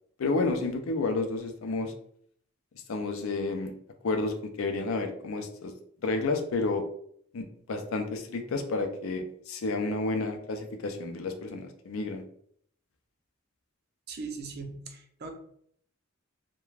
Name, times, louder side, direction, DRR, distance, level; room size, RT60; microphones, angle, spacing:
voice 1, 0.2-1.9 2.9-3.7 4.0-5.7 6.0-6.8 7.3-12.2, left 3 dB, 75° left, 6 dB, 0.4 m, -30 dB
voice 2, 14.1-15.3, right 4 dB, 50° right, 4 dB, 0.5 m, -39 dB
2.3 x 2.2 x 3.1 m, 0.64 s
head